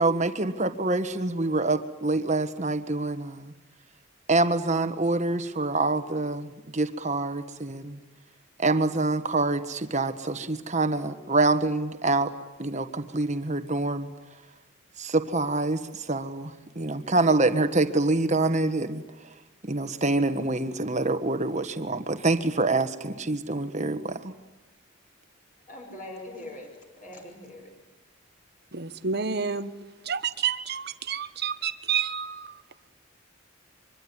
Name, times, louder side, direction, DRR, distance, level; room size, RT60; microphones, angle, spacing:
voice 1, 0.0-3.5 4.3-8.0 8.6-12.3 12.6-14.1 15.0-19.0 19.6-24.3, right 2 dB, 35° right, 1.5 m, -26 dB
voice 2, 25.7-27.7, left 1 dB, 40° left, 5.7 m, -42 dB
voice 3, 28.7-29.7 30.0-32.6, right 6 dB, 50° right, 1.2 m, -29 dB
24.5 x 24.0 x 9.9 m
head